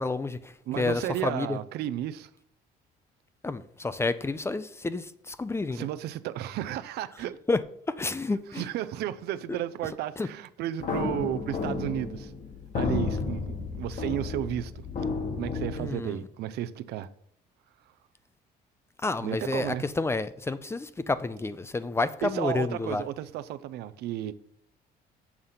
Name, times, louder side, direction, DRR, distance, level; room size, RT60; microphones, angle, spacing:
voice 1, 0.0-1.6 3.4-5.9 7.5-7.6 7.9-8.7 9.5-9.6 10.2-10.3 15.8-16.2 19.0-23.1, left 3 dB, 15° left, 0.5 m, -30 dB
voice 2, 0.7-2.3 5.7-7.4 8.5-12.3 12.7-14.9 15.4-17.1 19.2-19.9 22.2-24.3, right 12 dB, 75° right, 0.5 m, -33 dB
sound 1, 10.8-15.9, left 4 dB, 50° left, 1.4 m, -32 dB
7.2 x 6.4 x 5.6 m
cardioid pair, 110°, 17 cm